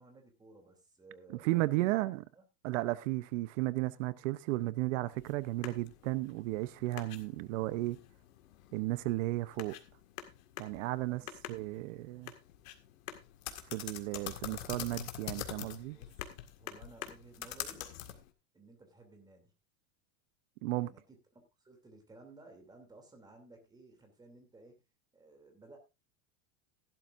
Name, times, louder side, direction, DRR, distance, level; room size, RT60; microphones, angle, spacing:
voice 1, 0.0-2.4 11.1-11.3 15.9-16.3 16.6-17.9 18.5-19.5 20.8-24.8 25.1-25.8, right 3 dB, 10° right, 2.8 m, -57 dB
voice 2, 1.3-2.2 2.6-8.0 8.7-9.8 10.6-11.2 11.5-12.3 13.7-16.0 20.6-20.9, right 18 dB, 60° right, 0.8 m, -34 dB
sound 1, 5.1-18.3, left 12 dB, 70° left, 2.0 m, -46 dB
15.0 x 12.0 x 2.5 m
supercardioid pair, 165°, 42 cm